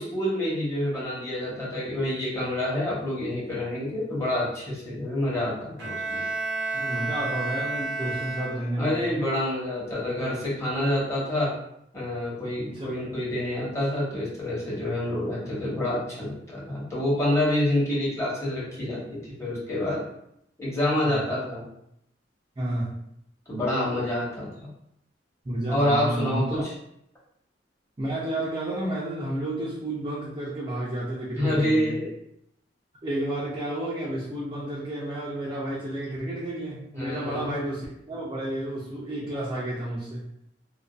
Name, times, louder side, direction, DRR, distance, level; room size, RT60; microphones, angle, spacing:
voice 1, 0.0-6.3 8.0-8.2 8.8-11.6 11.9-20.0 20.6-21.6 23.5-24.7 25.7-26.7 31.4-32.1 36.9-37.5, left 1 dB, 15° left, -6 dB, 0.8 m, -27 dB
Bowed string instrument, 5.8-9.0, right 3 dB, 70° right, 0.7 m, -31 dB
voice 2, 6.7-9.0 12.6-12.9 21.0-21.2 22.6-23.0 25.4-26.6 28.0-32.0 33.0-40.4, right 1 dB, 25° right, -6 dB, 0.4 m, -31 dB
2.5 x 2.2 x 2.2 m, 0.75 s
head